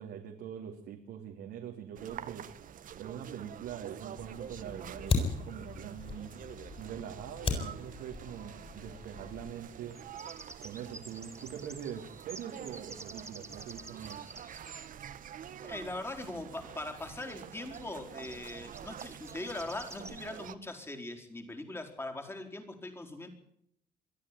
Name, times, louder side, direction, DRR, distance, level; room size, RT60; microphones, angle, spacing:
voice 1, 0.0-2.5 2.9-6.3 6.8-10.0 10.6-14.2, right 9 dB, 80° right, 3 dB, 2.8 m, -43 dB
sound 1, 2.0-20.5, right 9 dB, 50° right, 1.4 m, -47 dB
Fire, 4.2-9.5, left 4 dB, 35° left, 7.6 m, -37 dB
sound 2, 7.8-7.9 9.7-14.9 16.6-16.7 16.9-17.0 17.2-17.4 17.7-17.9 18.2-20.4, right 2 dB, 15° right, 3.3 m, -50 dB
voice 2, 15.6-23.3, left 2 dB, 15° left, 4 dB, 4.3 m, -41 dB
23.0 x 13.5 x 9.9 m, 0.72 s
cardioid pair, 110°, 17 cm